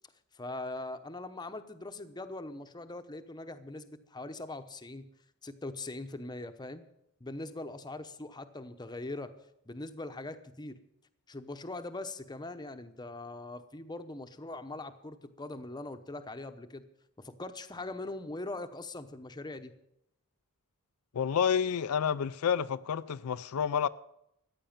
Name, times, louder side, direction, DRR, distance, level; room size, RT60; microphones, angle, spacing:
voice 1, 0.3-5.1 5.4-6.8 7.2-9.3 9.7-10.8 11.3-16.8 17.2-19.7, left 2 dB, 20° left, 0.8 m, -41 dB
voice 2, 21.1-23.9, left 7 dB, 80° left, 0.4 m, -29 dB
14.5 x 9.8 x 7.2 m
head